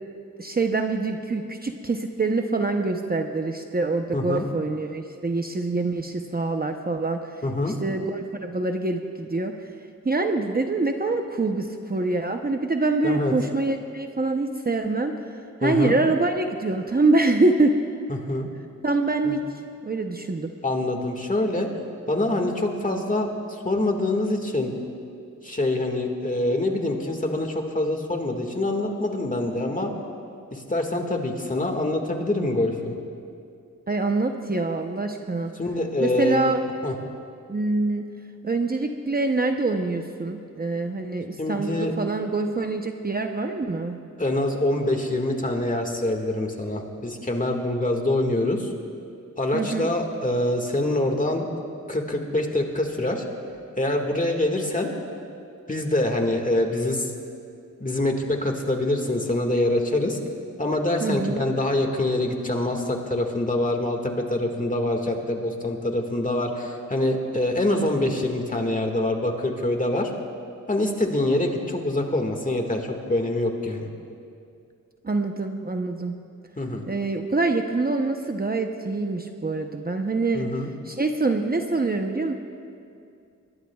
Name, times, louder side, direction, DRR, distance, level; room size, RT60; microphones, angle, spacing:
voice 1, 0.4-7.2 7.8-9.5 10.0-15.1 15.6-17.7 18.8-19.4 19.8-20.5 33.9-35.5 36.0-36.6 37.5-38.0 38.4-44.0 49.5-49.9 61.0-61.4 75.0-76.1 76.9-80.5 80.9-82.3, right 3 dB, 30° right, 4 dB, 0.8 m, -25 dB
voice 2, 4.1-4.5 7.4-7.8 13.0-13.3 15.6-16.0 18.1-18.5 19.2-19.4 20.6-21.7 22.1-23.3 23.6-24.7 25.4-29.9 30.5-32.9 35.6-36.5 36.8-36.9 41.4-42.0 44.2-48.7 49.4-51.5 51.9-53.2 53.8-54.9 55.7-57.1 57.8-60.2 60.6-70.1 70.7-73.9 76.6-76.9 80.3-80.7, left 1 dB, 25° left, 3 dB, 1.8 m, -25 dB
24.0 x 20.5 x 2.4 m, 2.4 s
wide cardioid pair, 80°, 31 cm